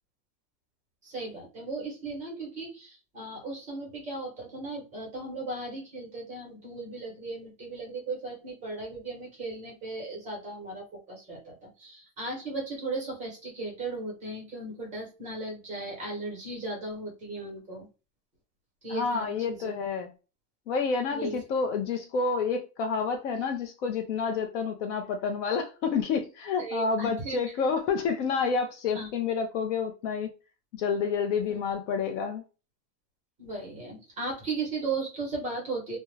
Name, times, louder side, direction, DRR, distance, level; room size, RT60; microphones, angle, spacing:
voice 1, 1.0-17.9 18.8-19.7 21.1-21.4 26.6-27.4 28.9-29.1 31.5-31.6 33.4-36.0, right 3 dB, 15° right, 0.8 m, -36 dB
voice 2, 18.9-20.1 20.7-30.3 30.7-32.4, left 5 dB, 55° left, 0.5 m, -29 dB
2.3 x 2.1 x 3.1 m
supercardioid pair, 165°, 46 cm